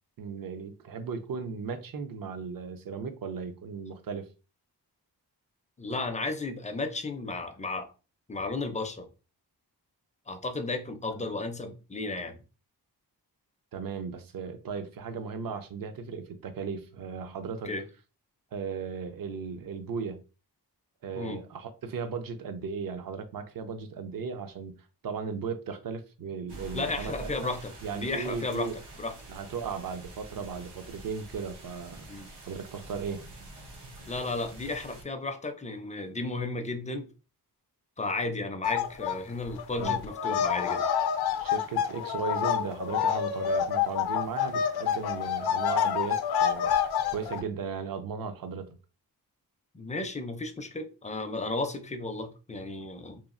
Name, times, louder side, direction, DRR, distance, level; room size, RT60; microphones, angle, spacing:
voice 1, 0.2-4.3 13.7-17.7 18.5-20.2 21.0-24.7 25.0-27.5 27.8-28.8 29.3-32.1 32.4-33.2 39.7-40.4 41.4-48.8, right 5 dB, 60° right, 0.6 m, -36 dB
voice 2, 5.8-7.9 8.3-9.1 10.3-12.4 17.6-17.9 21.1-21.4 26.7-28.7 29.0-29.2 32.1-32.3 34.1-37.1 38.0-40.9 49.7-53.2, left 2 dB, 20° left, 0.4 m, -34 dB
sound 1, 26.5-35.0, right 2 dB, 90° right, 0.9 m, -47 dB
sound 2, 38.6-39.2 39.5-47.4, left 8 dB, 75° left, 0.5 m, -28 dB
3.0 x 2.3 x 2.5 m
wide cardioid pair, 90°, 39 cm